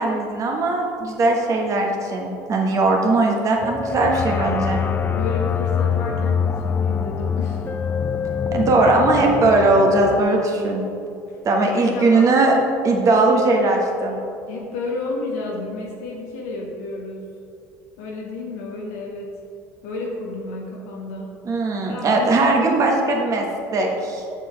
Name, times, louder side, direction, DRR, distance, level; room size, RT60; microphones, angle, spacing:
voice 1, 0.0-4.8 8.5-10.8 11.4-12.5 12.8-14.2 21.5-23.5 23.7-24.2, right 2 dB, 45° right, 1 dB, 1.2 m, -19 dB
sound 1, 3.6-10.2, left 7 dB, 25° left, 0.3 m, -24 dB
voice 2, 5.1-7.7 11.3-11.4 11.7-12.3 14.5-17.3 18.0-19.4 19.8-21.4 21.9-22.8, left 3 dB, 85° left, -2 dB, 0.8 m, -31 dB
6.7 x 5.6 x 3.3 m, 2.5 s
supercardioid pair, 80°, 8 cm